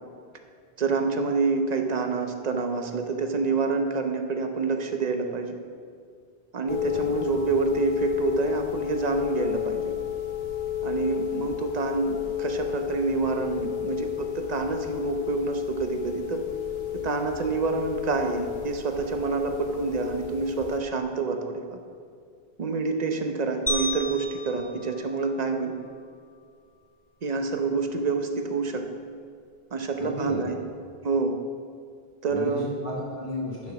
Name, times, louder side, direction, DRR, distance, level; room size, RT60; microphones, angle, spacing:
voice 1, 0.8-5.6 6.5-9.9 10.8-16.4 17.0-21.8 22.6-25.7 27.2-28.8 29.7-30.6 31.0-31.4 32.2-32.7, right 4 dB, 45° right, 5 dB, 0.9 m, -27 dB
sound 1, 6.7-20.8, left 11 dB, 75° left, 1.1 m, -32 dB
voice 2, 6.9-7.2 30.0-30.5 32.3-33.7, left 1 dB, 50° left, -8 dB, 2.1 m, -34 dB
sound 2, 23.7-26.0, left 1 dB, 10° left, 0.9 m, -33 dB
9.5 x 6.1 x 5.9 m, 2.2 s
omnidirectional pair, 1.0 m